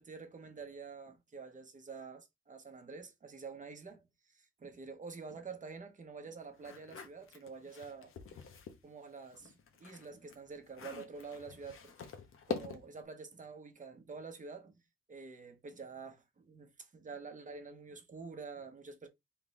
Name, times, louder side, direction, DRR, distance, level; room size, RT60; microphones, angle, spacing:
voice 1, 0.0-8.4 8.8-12.1 12.5-14.7 15.1-19.1, right 4 dB, 35° right, 1.0 m, -48 dB
sound 1, 6.6-8.8 9.2-13.0, left 6 dB, 80° left, 1.0 m, -45 dB
3.9 x 3.4 x 3.1 m
wide cardioid pair, 120°, 21 cm